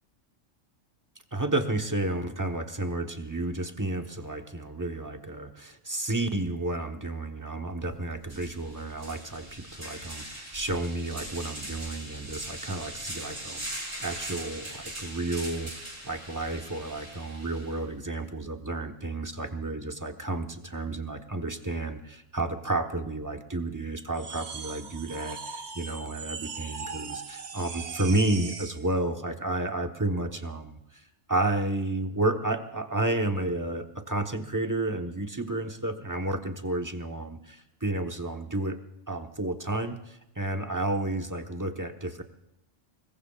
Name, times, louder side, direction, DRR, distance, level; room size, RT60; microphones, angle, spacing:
voice 1, 1.3-31.0 31.3-38.8 39.1-42.2, right 2 dB, 15° right, 5 dB, 1.1 m, -31 dB
sound 1, 7.8-7.9 8.2-17.8, right 1 dB, 80° right, 6.2 m, -41 dB
sound 2, 24.1-28.9, right 5 dB, 60° right, 1.4 m, -39 dB
25.5 x 21.0 x 2.4 m, 0.87 s
omnidirectional pair, 1.3 m